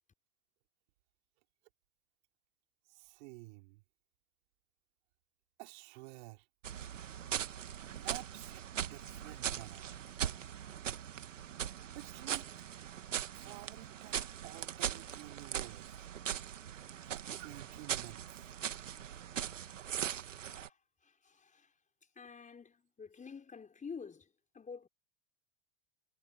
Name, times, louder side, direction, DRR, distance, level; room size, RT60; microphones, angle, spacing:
voice 1, 2.9-3.8 5.6-6.4 7.8-8.6 8.9-9.9 11.9-12.6 13.3-16.1 17.1-18.5, right 25 dB, 60° right, 3.2 m, -51 dB
sound 1, 6.6-20.7, right 9 dB, 85° right, 1.9 m, -40 dB
voice 2, 20.1-20.8 21.0-21.7 22.2-24.3 24.5-24.9, left 5 dB, 20° left, 5.4 m, -49 dB
hypercardioid pair, 90°, 37 cm